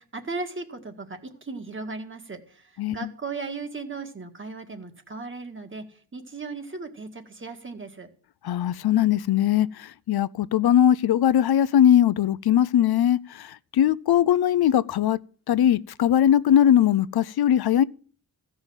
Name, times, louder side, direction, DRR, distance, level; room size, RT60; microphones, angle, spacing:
voice 1, 0.0-8.1, right 4 dB, 30° right, 2.0 m, -37 dB
voice 2, 8.4-9.7 10.1-13.5 13.7-15.2 15.5-17.8, left 10 dB, 75° left, 0.6 m, -20 dB
15.5 x 5.6 x 8.9 m
wide cardioid pair, 120°, 38 cm